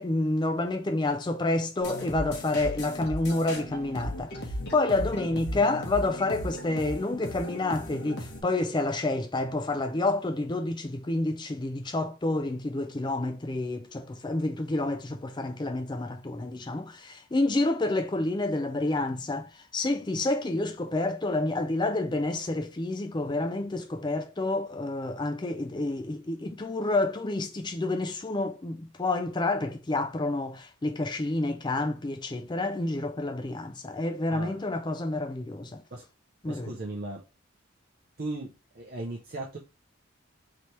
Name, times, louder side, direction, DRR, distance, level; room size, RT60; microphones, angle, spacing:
voice 1, 0.0-4.3 4.7-19.5 19.7-35.8 36.4-36.8, left 2 dB, 20° left, 0.4 m, -29 dB
sound 1, 1.8-8.4, equal, 50° left, 1.0 m, -36 dB
voice 2, 36.5-37.2 38.2-38.5 38.8-39.6, right 2 dB, 45° right, 0.6 m, -36 dB
3.3 x 3.0 x 4.1 m
head